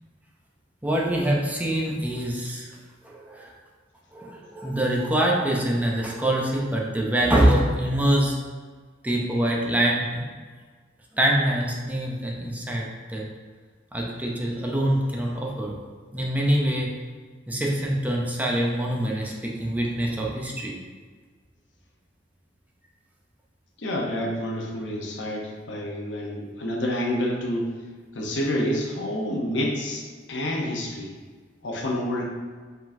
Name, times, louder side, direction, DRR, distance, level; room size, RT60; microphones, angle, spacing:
voice 1, 0.8-2.7 3.0-3.5 4.1-8.4 9.0-10.3 11.1-13.3 13.9-15.7 16.1-16.9 17.5-20.7, right 1 dB, 10° right, -2 dB, 0.5 m, -24 dB
voice 2, 23.8-27.7 28.1-31.1 31.6-32.2, left 1 dB, 75° left, -1 dB, 0.8 m, -28 dB
4.7 x 3.8 x 2.6 m, 1.5 s
head